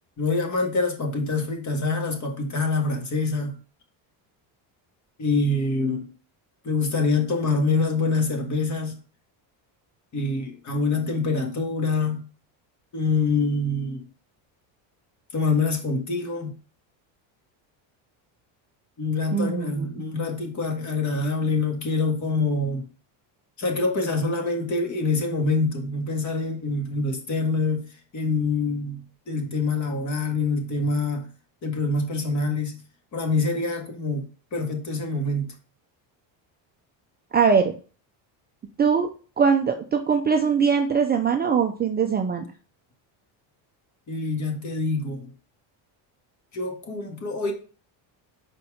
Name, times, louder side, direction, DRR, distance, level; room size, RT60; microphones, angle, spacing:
voice 1, 0.2-3.6 5.2-6.1 6.6-9.0 10.1-12.2 12.9-14.0 15.3-16.6 19.0-22.9 23.6-27.9 28.1-31.3 31.6-32.7 33.1-35.5 44.1-45.3 46.5-47.5, left 3 dB, 35° left, 1.8 m, -25 dB
voice 2, 19.3-19.9 37.3-37.7 38.8-39.1 39.4-42.4, right 6 dB, 20° right, 0.4 m, -21 dB
5.3 x 4.3 x 4.9 m
cardioid pair, 130°, 48 cm